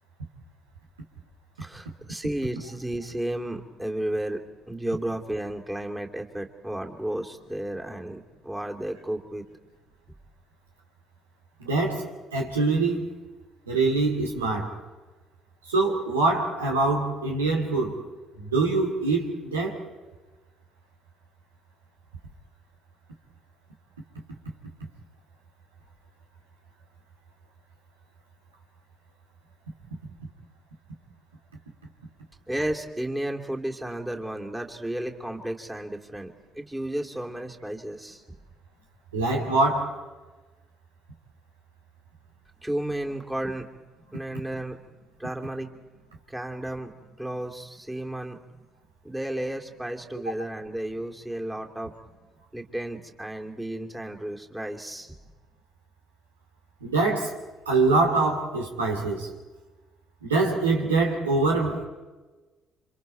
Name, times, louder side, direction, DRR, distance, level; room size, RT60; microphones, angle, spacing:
voice 1, 1.6-4.4 4.7-9.4 32.5-38.2 42.6-43.7 44.1-44.8 45.2-45.7 46.3-46.9 47.2-48.4 49.0-52.1 52.5-55.2, right 1 dB, 10° right, 2.8 m, -33 dB
voice 2, 11.6-13.1 13.7-14.8 15.7-18.1 18.4-19.8 39.1-40.0 56.8-57.4 57.7-59.3 60.2-61.8, right 3 dB, 90° right, 2.6 m, -24 dB
29.5 x 26.0 x 4.6 m
hypercardioid pair, 50°, 0 cm